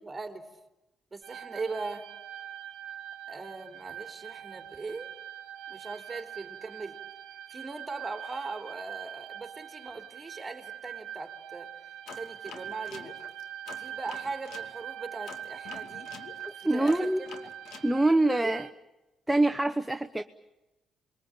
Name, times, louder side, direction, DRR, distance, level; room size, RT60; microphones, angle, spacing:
voice 1, 0.0-0.5 1.1-2.1 3.3-5.1 5.7-7.0 7.5-11.7 12.2-13.1 13.8-16.1 16.6-17.1 18.4-18.5, right 3 dB, 20° right, 5 dB, 3.5 m, -39 dB
sound 1, 1.2-18.7, right 10 dB, 85° right, 1.2 m, -43 dB
sound 2, 12.1-14.7 15.3-17.9, left 6 dB, 75° left, 2.5 m, -47 dB
voice 2, 16.6-17.2 17.8-18.7 19.3-20.2, right 2 dB, 5° right, 7 dB, 1.0 m, -24 dB
28.0 x 22.5 x 8.9 m, 0.99 s
cardioid pair, 90°, 0 cm